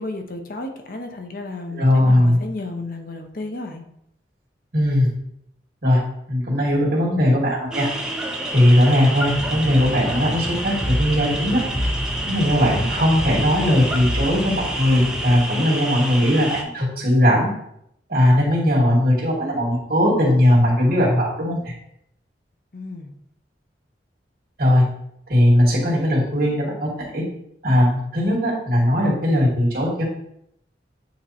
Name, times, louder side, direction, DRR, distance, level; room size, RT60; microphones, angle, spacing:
voice 1, 0.0-3.8 22.7-23.1, left 2 dB, 50° left, 4 dB, 0.7 m, -32 dB
voice 2, 1.7-2.4 4.7-5.1 5.8-6.0 6.3-7.9 8.5-11.6 12.2-17.5 18.1-21.7 24.6-24.8 25.3-26.9 27.1-27.2 27.6-30.0, left 1 dB, 55° right, -4 dB, 2.1 m, -18 dB
sound 1, 7.7-16.6, right 1 dB, 5° right, 0.6 m, -29 dB
sound 2, 9.2-15.5, equal, 35° right, 2.0 m, -29 dB
8.6 x 3.0 x 4.2 m, 0.74 s
head